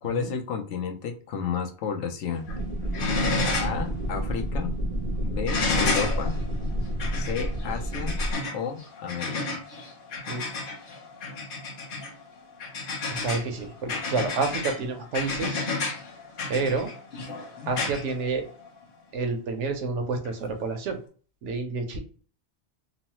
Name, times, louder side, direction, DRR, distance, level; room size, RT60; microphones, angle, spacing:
voice 1, 0.0-2.5 3.6-4.7 5.2-6.4 7.1-8.2 8.5-9.6 17.6-17.7, left 6 dB, 85° left, 4 dB, 0.9 m, -32 dB
sound 1, 2.3-2.6 2.9-3.9 4.2-4.3 5.5-18.8 20.2-20.3, left 3 dB, 55° left, 0.8 m, -31 dB
sound 2, 2.5-8.3, equal, 55° right, 0.5 m, -29 dB
voice 2, 13.2-15.7 16.5-16.9 17.7-18.5 19.1-21.0 21.4-22.0, right 4 dB, 85° right, 5 dB, 1.0 m, -29 dB
3.0 x 2.0 x 2.9 m, 0.40 s
omnidirectional pair, 1.2 m